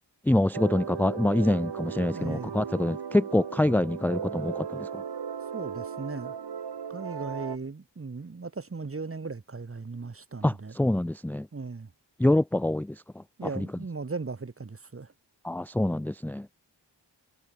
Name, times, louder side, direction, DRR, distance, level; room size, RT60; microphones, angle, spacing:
voice 1, 0.3-5.0 10.4-11.5 12.2-13.2 13.6-13.7 15.4-16.5, left 1 dB, 5° left, 0.5 m, -26 dB
sound 1, 0.5-7.6, right 7 dB, 65° right, 1.5 m, -36 dB
voice 2, 2.1-2.6 5.5-6.3 6.9-10.8 11.5-11.9 13.4-15.1, right 4 dB, 30° right, 1.4 m, -37 dB
wide cardioid pair, 90°, 44 cm